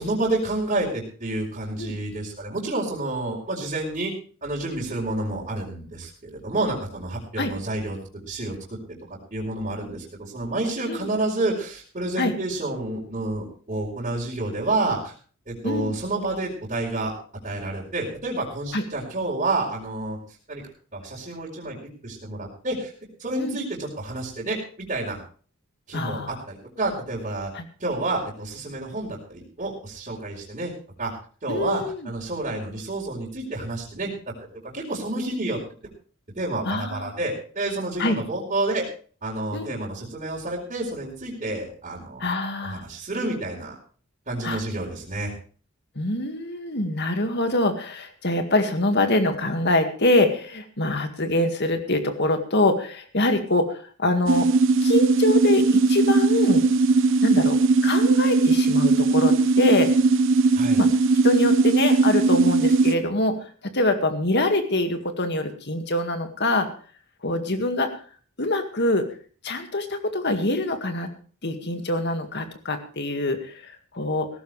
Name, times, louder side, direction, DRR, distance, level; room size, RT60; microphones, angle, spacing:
voice 1, 0.0-4.1 4.4-8.0 8.3-8.8 9.3-15.1 15.5-17.1 17.4-20.2 20.5-20.6 20.9-21.8 22.0-22.9 23.2-25.2 25.9-27.5 27.8-30.7 31.0-31.1 31.4-34.1 34.6-35.6 36.4-38.9 39.2-42.3 42.6-43.7 44.3-45.3 60.5-60.8, right 2 dB, 35° right, -5 dB, 4.5 m, -29 dB
voice 2, 15.6-16.0 18.7-18.8 23.4-23.6 25.9-26.4 27.5-27.7 31.5-32.1 36.7-37.1 38.0-38.2 39.5-39.7 42.2-42.8 44.4-44.6 46.0-53.7 54.0-54.5 54.8-56.7 57.2-57.6 57.8-59.9 60.8-60.9 61.2-63.4 63.6-66.7 67.2-67.9 68.4-69.1 69.4-71.1 71.4-74.3, left 2 dB, 50° left, 7 dB, 2.0 m, -24 dB
sound 1, 54.3-62.9, right 3 dB, 60° right, 1.0 m, -19 dB
17.5 x 14.5 x 3.3 m, 0.41 s
head